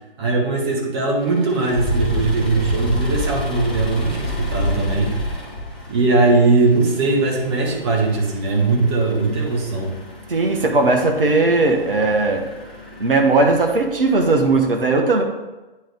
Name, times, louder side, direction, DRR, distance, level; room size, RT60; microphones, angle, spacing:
voice 1, 0.2-5.1 5.9-9.9, right 3 dB, 25° right, -1 dB, 1.5 m, -19 dB
sound 1, 1.2-14.7, equal, 10° left, 0.3 m, -29 dB
voice 2, 10.3-12.5 13.0-15.2, right 3 dB, 65° right, 3 dB, 1.3 m, -17 dB
10.0 x 3.9 x 3.5 m, 1.1 s
figure-of-eight pair, 135°, 30 cm